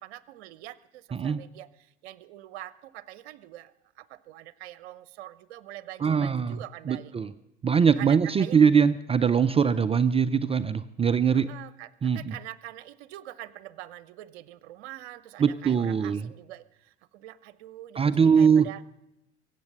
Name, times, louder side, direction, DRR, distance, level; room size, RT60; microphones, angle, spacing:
voice 1, 0.0-7.1 8.0-8.6 11.3-18.8, right 14 dB, 65° right, 17 dB, 0.8 m, -44 dB
voice 2, 6.0-6.6 6.9-7.3 7.6-11.5 12.0-12.3 15.4-16.3 18.0-18.7, right 6 dB, 15° right, 13 dB, 0.4 m, -22 dB
23.5 x 8.2 x 6.5 m, 0.89 s
hypercardioid pair, 75°, 35 cm